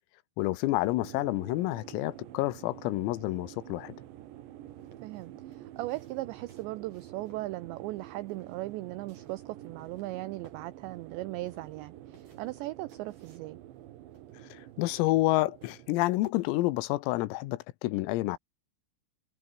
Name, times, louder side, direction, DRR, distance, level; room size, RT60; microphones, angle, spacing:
voice 1, 0.4-3.9 14.5-18.4, left 18 dB, 90° left, 3.8 m, -29 dB
sound 1, 1.0-16.0, right 13 dB, 65° right, 3.6 m, -48 dB
sound 2, 4.7-16.3, right 3 dB, 35° right, 8.8 m, -63 dB
voice 2, 5.0-13.6, right 18 dB, 80° right, 2.6 m, -38 dB
omnidirectional pair, 6.0 m